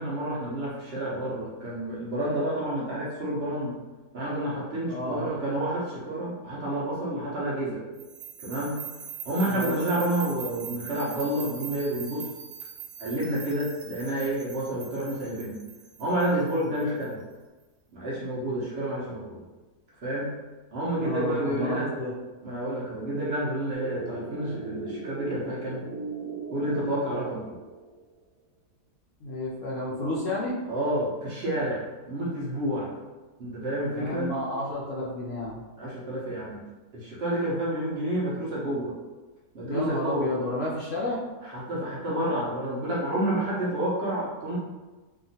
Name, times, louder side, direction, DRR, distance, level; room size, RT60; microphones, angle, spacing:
voice 1, 0.0-3.8 4.1-7.8 8.4-8.8 9.2-12.3 13.0-15.5 16.0-17.2 17.9-19.4 20.0-20.3 20.7-21.9 22.4-25.8 26.5-27.4 30.7-32.9 33.4-34.3 35.8-36.6 36.9-38.9 39.5-40.3 41.4-44.6, right 1 dB, 60° right, -6 dB, 0.7 m, -29 dB
voice 2, 4.9-5.3 9.4-9.7 21.0-22.1 29.2-30.5 33.8-35.6 39.6-41.2, left 2 dB, 65° left, -5 dB, 0.8 m, -31 dB
sound 1, 8.0-17.0, right 9 dB, 75° right, 1.1 m, -42 dB
sound 2, 23.7-28.1, right 3 dB, 10° right, 1.1 m, -38 dB
2.8 x 2.4 x 2.7 m, 1.2 s
omnidirectional pair, 1.8 m